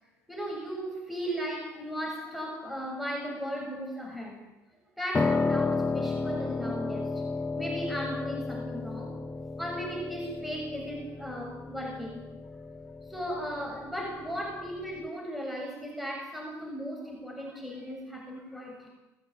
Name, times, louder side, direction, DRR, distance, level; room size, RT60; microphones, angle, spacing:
voice 1, 0.3-4.4 5.0-7.2 7.6-9.2 9.6-12.3 13.1-18.9, equal, ahead, 0 dB, 7.4 m, -36 dB
Piano, 5.1-15.1, left 3 dB, 20° left, 1.1 m, -33 dB
20.5 x 15.5 x 8.8 m, 0.99 s
hypercardioid pair, 75°, 8 cm